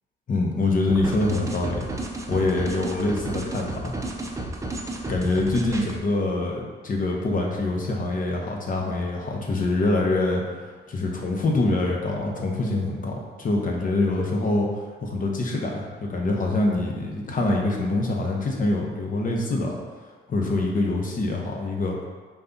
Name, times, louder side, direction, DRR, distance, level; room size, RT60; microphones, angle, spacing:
voice 1, 0.3-1.9 2.3-3.9 5.1-10.4 10.9-14.7 15.0-19.8 20.3-22.0, left 2 dB, 45° left, -1 dB, 0.9 m, -25 dB
sound 1, 0.9-6.0, right 2 dB, 15° right, 0.5 m, -32 dB
5.2 x 2.4 x 3.9 m, 1.5 s
cardioid pair, 90°, 20 cm